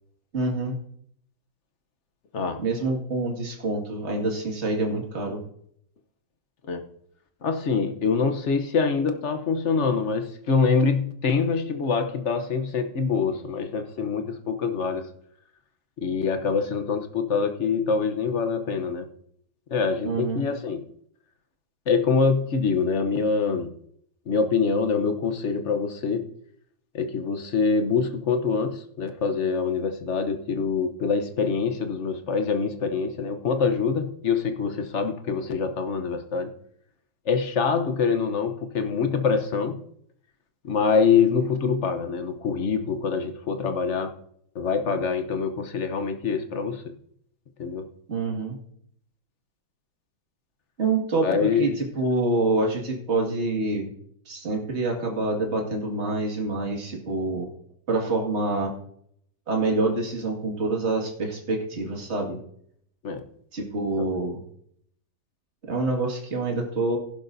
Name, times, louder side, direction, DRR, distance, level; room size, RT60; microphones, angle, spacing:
voice 1, 0.3-0.8 2.6-5.4 20.0-20.5 48.1-48.6 50.8-53.9 54.3-57.5 57.9-58.7 59.5-62.4 63.5-64.4 65.6-67.0, right 2 dB, 35° right, 2.2 m, -26 dB
voice 2, 7.4-15.1 16.0-19.1 19.7-20.8 21.9-23.7 24.3-26.3 26.9-36.5 37.3-39.8 40.6-44.1 44.5-46.9 47.6-47.9 51.2-51.8 63.0-63.2 64.0-64.1, left 5 dB, 50° left, 0.9 m, -25 dB
16.5 x 11.5 x 2.7 m
omnidirectional pair, 2.1 m